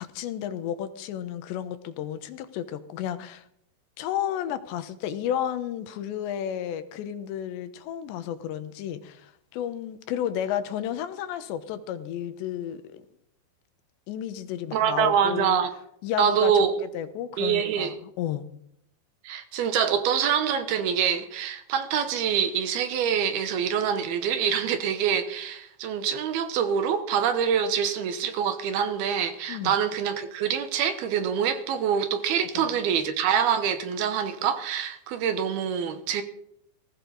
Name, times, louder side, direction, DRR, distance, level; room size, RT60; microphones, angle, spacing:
voice 1, 0.0-3.5 4.0-13.0 14.1-15.6 16.0-18.5 29.5-29.8 32.4-32.8, left 10 dB, 85° left, 3.3 m, -32 dB
voice 2, 14.7-15.7 16.2-16.7 17.4-17.9 19.2-36.2, right 8 dB, 70° right, 2.9 m, -25 dB
19.5 x 16.0 x 4.0 m
omnidirectional pair, 5.0 m